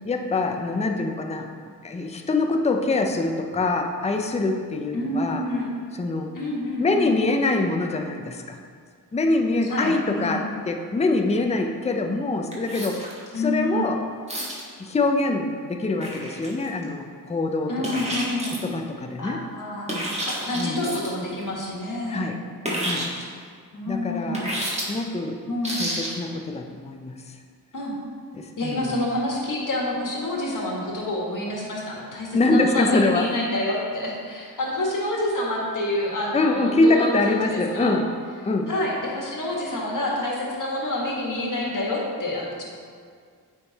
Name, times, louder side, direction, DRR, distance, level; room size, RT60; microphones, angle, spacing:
voice 1, 0.0-1.5 1.8-5.4 5.9-6.3 6.8-8.6 9.1-13.1 13.4-14.0 14.8-18.0 18.6-19.4 20.6-20.8 22.1-22.4 22.8-23.1 23.9-24.5 24.9-25.4 25.8-27.1 28.3-28.9 32.3-33.3 36.3-38.1 38.4-38.7, left 2 dB, 15° left, 4 dB, 0.5 m, -24 dB
voice 2, 4.9-5.7 6.3-7.1 9.6-10.4 13.3-13.8 17.7-18.5 19.2-19.9 20.2-22.3 23.7-24.5 25.4-25.8 27.7-27.9 28.6-37.9 38.7-42.6, left 1 dB, 50° left, -3 dB, 1.8 m, -28 dB
sound 1, 12.5-13.3 14.3-14.7 16.0-16.8 17.8-18.7 19.9-21.2 22.6-23.2 24.3-24.8 25.6-26.2, right 1 dB, 15° right, 1.6 m, -30 dB
8.5 x 3.6 x 4.0 m, 2.1 s
cardioid pair, 60°, 41 cm